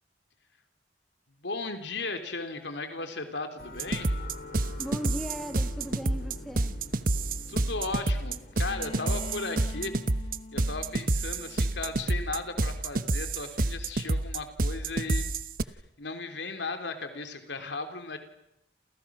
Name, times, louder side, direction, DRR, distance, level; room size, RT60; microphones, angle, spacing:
voice 1, 1.4-4.1 7.5-9.9 10.5-15.3 15.6-18.2, left 3 dB, 85° left, 7 dB, 3.2 m, -36 dB
sound 1, 3.6-8.7, left 2 dB, 55° left, 4.6 m, -45 dB
sound 2, 3.8-15.6, right 2 dB, 50° right, 1.0 m, -28 dB
voice 2, 4.8-6.8, equal, ahead, 6 dB, 1.5 m, -38 dB
Bowed string instrument, 8.6-12.4, left 2 dB, 35° left, 2.0 m, -45 dB
29.0 x 29.0 x 6.2 m, 0.78 s
head